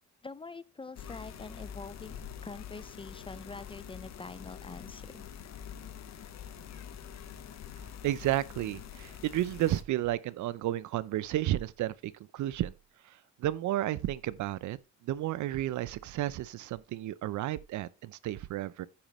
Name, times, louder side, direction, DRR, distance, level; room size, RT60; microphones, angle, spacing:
voice 1, 0.2-5.3, left 3 dB, 20° left, 0.4 m, -45 dB
sound 1, 0.9-9.8, left 8 dB, 60° left, 1.0 m, -45 dB
voice 2, 8.0-12.7 13.4-14.8 15.0-18.9, right 14 dB, 75° right, 0.6 m, -32 dB
14.5 x 5.0 x 3.0 m
cardioid pair, 90°, 30 cm